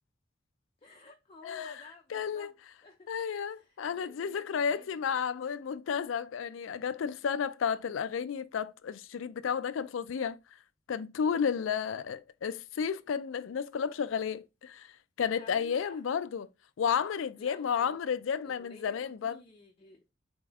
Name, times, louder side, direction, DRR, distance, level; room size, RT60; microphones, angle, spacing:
voice 1, 0.8-2.5 2.8-5.2 11.4-11.8 15.3-16.0 16.9-17.0 17.4-18.0 18.4-20.0, left 3 dB, 30° left, 0.6 m, -55 dB
voice 2, 1.4-1.8 2.1-2.5 3.1-10.4 10.9-14.9 15.2-16.5 16.8-19.4, left 7 dB, 80° left, 0.4 m, -32 dB
4.3 x 3.4 x 3.5 m
head